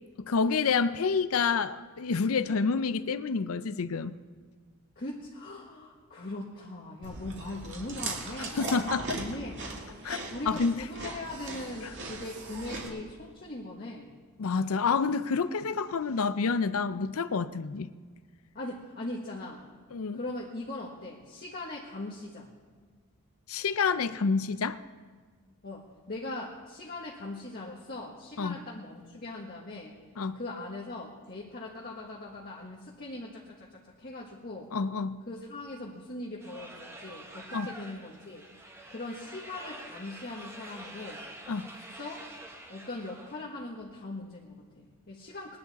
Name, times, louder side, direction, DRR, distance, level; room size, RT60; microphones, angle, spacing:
voice 1, 0.2-4.2 8.4-9.2 10.0-10.8 11.8-11.9 14.4-17.9 19.9-20.2 23.5-24.8 28.4-28.6 30.2-30.4 34.7-35.2 37.5-37.7 41.5-41.7, left 5 dB, 70° left, 13 dB, 0.5 m, -28 dB
voice 2, 5.0-8.7 9.1-9.7 10.3-14.1 18.5-19.6 20.1-22.5 25.6-29.9 30.3-34.7 35.3-38.4 38.9-41.2 42.0-42.2 42.7-45.6, left 2 dB, 45° left, -3 dB, 1.4 m, -40 dB
Chewing mastication, 7.0-12.9, right 2 dB, 55° right, 2.3 m, -39 dB
sound 1, 36.4-43.5, right 1 dB, 10° right, 1.2 m, -46 dB
20.5 x 10.5 x 4.1 m, 1.5 s
head